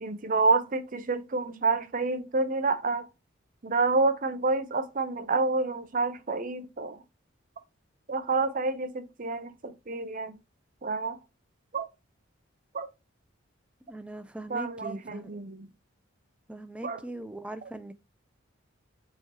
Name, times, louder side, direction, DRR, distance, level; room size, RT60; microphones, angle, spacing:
voice 1, 0.0-3.1 3.6-7.0 8.1-10.3 10.8-11.2 11.7-11.9 12.7-12.9 14.5-15.7 16.8-17.0, right 3 dB, 40° right, 0.6 m, -28 dB
voice 2, 13.9-15.3 16.5-17.9, right 1 dB, 5° right, 0.4 m, -40 dB
5.5 x 3.0 x 2.9 m
head